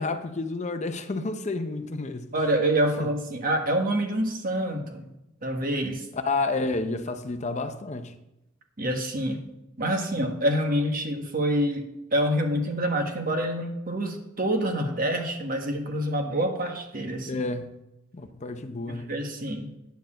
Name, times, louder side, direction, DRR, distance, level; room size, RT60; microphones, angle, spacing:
voice 1, 0.0-2.3 3.0-3.1 6.1-8.1 17.3-17.8 18.1-19.1, left 3 dB, 35° left, 0.6 m, -30 dB
voice 2, 2.3-5.1 5.4-6.0 8.8-9.4 9.8-11.8 12.1-17.4 18.9-19.7, right 1 dB, 45° right, 1.3 m, -27 dB
9.3 x 4.6 x 7.3 m
head